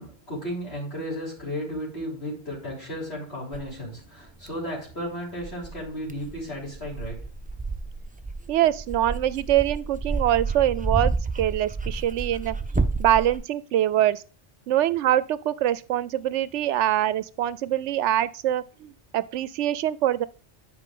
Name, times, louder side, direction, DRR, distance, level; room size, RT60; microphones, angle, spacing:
voice 1, 0.0-7.2, equal, 60° left, 3.7 m, -34 dB
Dog, 3.5-3.7 4.4-4.5 5.4-13.4, right 3 dB, 10° right, 0.5 m, -30 dB
voice 2, 8.5-14.2 14.7-20.3, right 12 dB, 75° right, 0.9 m, -24 dB
10.5 x 5.1 x 3.7 m
omnidirectional pair, 1.2 m